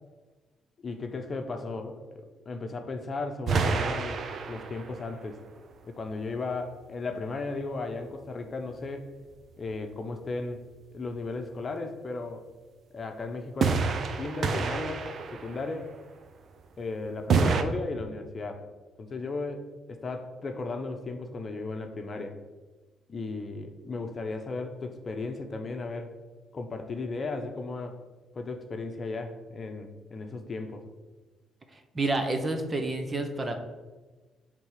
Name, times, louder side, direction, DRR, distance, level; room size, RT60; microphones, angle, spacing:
voice 1, 0.8-4.2 4.5-5.4 5.9-9.1 9.6-10.6 10.9-12.5 12.9-13.8 14.2-15.9 16.8-18.6 19.0-22.4 23.1-26.1 26.5-28.0 28.3-30.8, left 3 dB, 40° left, 5 dB, 1.0 m, -35 dB
sound 1, 3.5-5.1 13.6-15.8 17.3-17.6, right 5 dB, 55° right, 0.7 m, -28 dB
voice 2, 31.9-33.5, right 2 dB, 25° right, 5 dB, 1.2 m, -29 dB
8.2 x 3.8 x 6.6 m, 1.2 s
cardioid pair, 90°, 0 cm